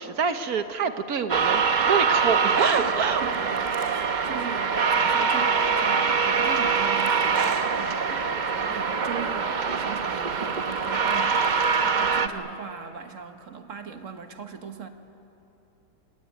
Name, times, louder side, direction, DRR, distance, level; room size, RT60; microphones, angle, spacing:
voice 1, 0.0-3.2 4.1-4.3 12.3-12.5, right 6 dB, 70° right, 8 dB, 1.6 m, -27 dB
sound 1, 1.3-12.3, right 5 dB, 40° right, 0.8 m, -24 dB
Domestic sounds home sounds, 2.7-3.9 6.5-7.6 10.2-11.8, equal, 20° right, 4.3 m, -49 dB
voice 2, 2.7-14.9, right 6 dB, 55° right, 7 dB, 1.7 m, -39 dB
27.5 x 18.5 x 9.3 m, 3.0 s
omnidirectional pair, 1.7 m